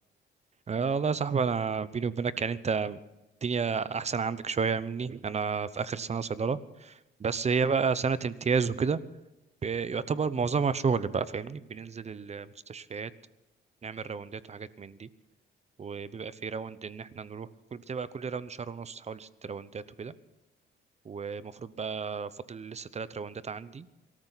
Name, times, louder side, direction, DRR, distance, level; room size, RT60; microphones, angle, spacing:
voice 1, 0.7-3.0 3.4-9.0 9.6-13.1 13.8-15.1 15.8-20.1 21.0-23.9, right 5 dB, 35° right, 16 dB, 0.8 m, -31 dB
24.0 x 13.5 x 4.1 m, 1.0 s
cardioid pair, 90°, 20 cm